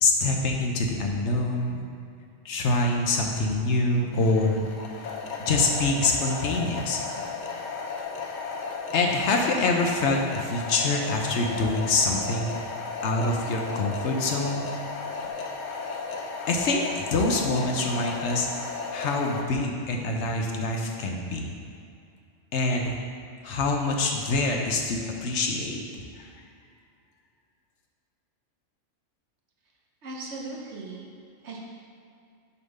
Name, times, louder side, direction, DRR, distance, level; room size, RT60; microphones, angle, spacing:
voice 1, 0.0-1.9 2.4-4.6 5.4-7.0 8.9-12.5 13.0-14.7 16.5-18.5 18.9-21.5 22.5-23.0 23.4-25.8 26.2-26.3, left 2 dB, 70° left, 1 dB, 1.0 m, -25 dB
sound 1, 4.1-19.4, left 4 dB, 50° left, 0.6 m, -35 dB
voice 2, 30.0-31.1 31.4-31.6, right 3 dB, 65° right, -1 dB, 1.2 m, -38 dB
6.8 x 3.6 x 5.4 m, 2.5 s
omnidirectional pair, 1.2 m